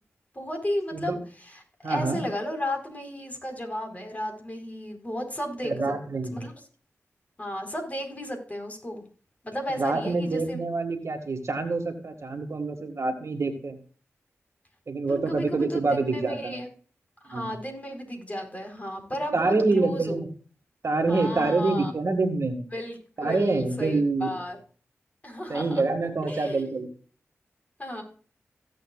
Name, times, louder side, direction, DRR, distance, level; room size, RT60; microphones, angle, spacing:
voice 1, 0.3-1.2 1.5-5.7 6.3-6.5 7.4-9.0 9.4-10.6 15.1-16.7 17.2-20.2 21.1-21.9 22.7-24.6 25.2-25.8 26.2-26.8 27.8-28.0, left 1 dB, 30° left, 3 dB, 4.4 m, -34 dB
voice 2, 1.8-2.2 5.6-6.4 9.8-13.8 14.9-16.6 17.3-17.5 19.3-20.3 20.8-22.6 23.2-24.3 25.5-26.9, right 3 dB, 60° right, 5 dB, 1.8 m, -26 dB
16.0 x 7.6 x 2.4 m, 0.42 s
cardioid pair, 40°, 5 cm